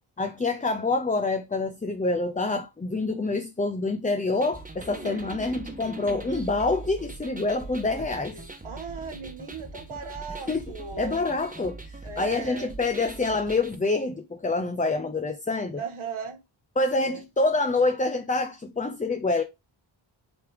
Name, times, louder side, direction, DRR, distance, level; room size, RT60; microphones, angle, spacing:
voice 1, 0.2-8.4 10.5-10.7 11.0-15.8 16.8-19.4, left 3 dB, 15° left, 0.6 m, -26 dB
sound 1, 4.4-13.8, right 2 dB, 15° right, 1.3 m, -41 dB
voice 2, 5.0-5.3 7.8-8.1 8.3-11.2 12.0-12.7 15.8-16.4 17.0-17.2, right 6 dB, 75° right, 1.5 m, -38 dB
7.9 x 3.4 x 3.5 m
cardioid pair, 60°, 50 cm